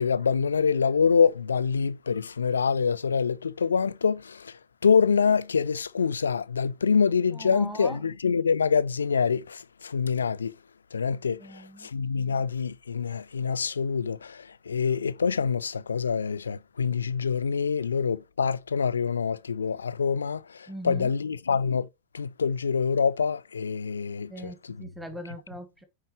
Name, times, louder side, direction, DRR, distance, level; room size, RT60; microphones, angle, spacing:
voice 1, 0.0-10.5 10.9-21.9 22.1-24.5, left 6 dB, 70° left, 0.3 m, -26 dB
voice 2, 7.3-8.0 11.4-11.9 20.7-21.1 24.3-25.8, equal, 5° right, 1.0 m, -40 dB
9.4 x 3.8 x 2.8 m
figure-of-eight pair, 90°, 0 cm